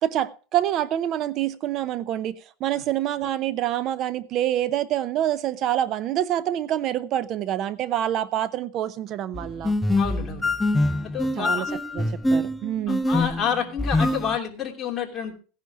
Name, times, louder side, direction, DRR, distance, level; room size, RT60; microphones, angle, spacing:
voice 1, 0.0-2.3 2.6-9.7 11.4-11.7 12.0-13.0, right 12 dB, 40° right, 16 dB, 0.7 m, -26 dB
sound 1, 9.3-14.4, left 1 dB, 5° left, 0.6 m, -24 dB
voice 2, 10.0-10.7 11.0-11.7 12.9-15.3, left 7 dB, 20° left, 0 dB, 2.9 m, -29 dB
16.5 x 10.0 x 3.5 m, 0.37 s
supercardioid pair, 145°, 0 cm